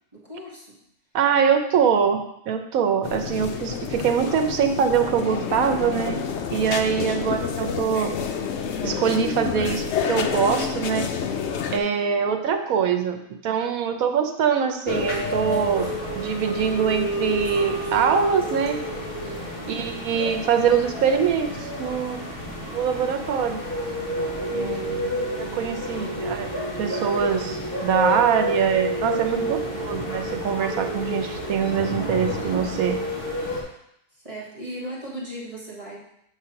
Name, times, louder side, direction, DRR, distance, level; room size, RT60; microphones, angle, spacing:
voice 1, 0.1-0.8 7.1-7.3 11.9-12.2 19.5-19.9 24.5-25.2 25.9-26.4 29.3-29.7 34.1-36.0, right 1 dB, 25° right, -5 dB, 1.3 m, -38 dB
voice 2, 1.1-6.2 6.5-8.1 8.8-11.1 11.7-18.8 19.7-22.2 22.7-23.6 24.5-24.9 25.4-26.5 26.8-33.0, right 7 dB, 85° right, 6 dB, 1.2 m, -23 dB
sound 1, 3.0-11.8, left 7 dB, 65° left, 0.8 m, -28 dB
sound 2, 14.8-33.6, equal, 40° left, 1.6 m, -29 dB
7.4 x 3.3 x 5.7 m, 0.76 s
omnidirectional pair, 1.5 m